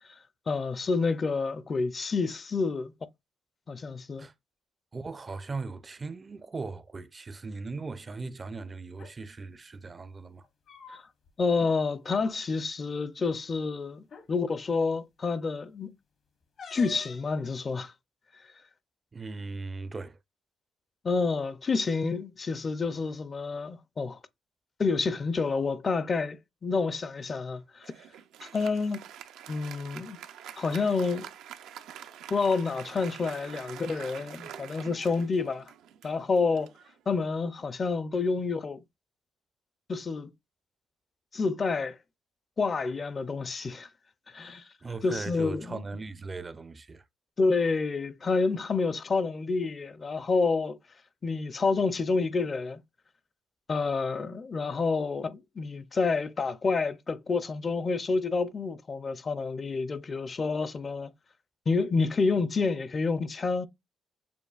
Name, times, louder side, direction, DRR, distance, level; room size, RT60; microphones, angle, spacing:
voice 1, 0.5-2.9 3.7-4.3 10.9-11.0 11.4-15.9 16.7-17.9 21.0-24.2 24.8-27.9 28.4-29.0 29.5-30.2 30.6-31.3 32.3-35.6 36.0-36.7 37.1-38.8 39.9-40.3 41.3-42.0 42.6-43.9 44.3-44.6 45.0-45.8 47.4-50.8 51.2-52.8 53.7-61.1 61.7-63.7, left 4 dB, 35° left, 0.4 m, -28 dB
voice 2, 4.9-10.4 19.1-20.2 44.8-47.0, right 3 dB, 30° right, 0.4 m, -38 dB
sound 1, 8.9-9.1 10.4-11.3 11.6-11.7 12.1-12.3 13.3-13.4 14.0-14.3 16.6-17.3, left 4 dB, 60° left, 0.9 m, -46 dB
Applause, 27.8-37.6, right 10 dB, 85° right, 0.4 m, -46 dB
7.0 x 2.3 x 2.3 m
cardioid pair, 90°, 0 cm